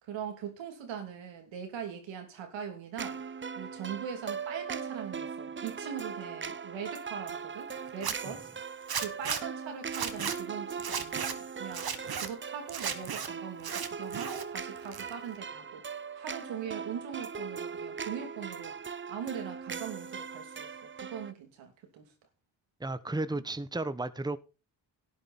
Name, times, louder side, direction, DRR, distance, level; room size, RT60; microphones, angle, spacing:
voice 1, 0.0-3.2 3.6-8.5 9.0-11.9 12.2-15.8 16.2-18.7 19.1-20.7 21.0-22.1 23.3-23.4, right 8 dB, 85° right, 3.0 m, -41 dB
sound 1, 3.0-21.3, right 6 dB, 25° right, 0.7 m, -40 dB
Zipper (clothing), 7.9-8.2 8.9-9.4 9.9-10.4 10.8-11.3 11.7-12.3 12.7-13.3 13.6-14.4 14.8-15.4, right 7 dB, 55° right, 1.8 m, -35 dB
voice 2, 22.8-24.4, right 2 dB, 10° right, 1.1 m, -33 dB
12.0 x 10.0 x 4.2 m
supercardioid pair, 55°, 44 cm